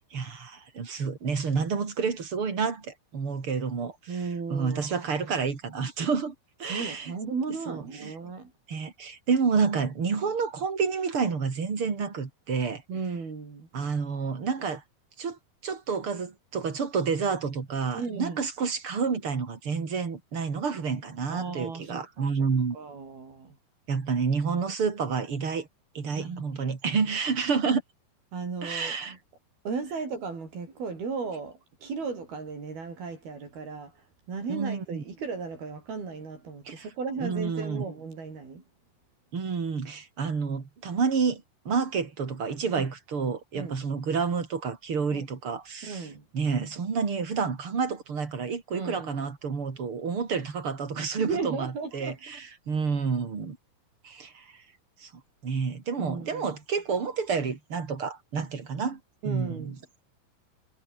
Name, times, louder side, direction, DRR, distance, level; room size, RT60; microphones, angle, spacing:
voice 1, 0.1-4.2 4.5-6.3 6.6-7.1 7.7-8.1 8.7-12.8 13.7-14.8 15.2-22.8 23.9-25.7 25.9-27.8 28.6-29.2 34.5-35.0 36.7-36.9 37.2-37.9 39.3-53.6 54.0-54.5 55.0-55.1 55.4-59.8, right 5 dB, 35° right, 3.9 m, -29 dB
voice 2, 4.1-4.8 6.7-8.5 12.9-13.7 17.9-18.4 21.3-22.3 22.7-23.5 26.2-26.7 28.3-29.2 29.6-33.9 34.3-38.6 42.7-42.9 43.5-43.8 45.1-45.2 45.8-46.2 48.7-49.1 51.2-52.2 56.0-56.5 59.2-59.8, right 4 dB, 80° right, 8.2 m, -35 dB
omnidirectional pair, 4.3 m